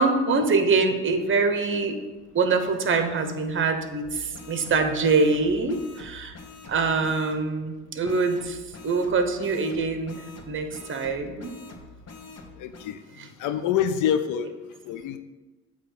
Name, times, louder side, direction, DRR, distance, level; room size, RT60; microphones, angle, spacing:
voice 1, 0.0-2.0 2.3-6.4 6.7-8.6 8.8-11.5 13.2-13.3, right 4 dB, 40° right, 7 dB, 1.0 m, -24 dB
sound 1, 4.0-7.4 8.0-12.9, left 3 dB, 55° left, 1.2 m, -45 dB
voice 2, 12.6-13.0 13.4-14.5 14.8-15.2, left 9 dB, 90° left, 10 dB, 0.5 m, -26 dB
8.3 x 3.0 x 6.3 m, 1.2 s
cardioid pair, 90°, 30 cm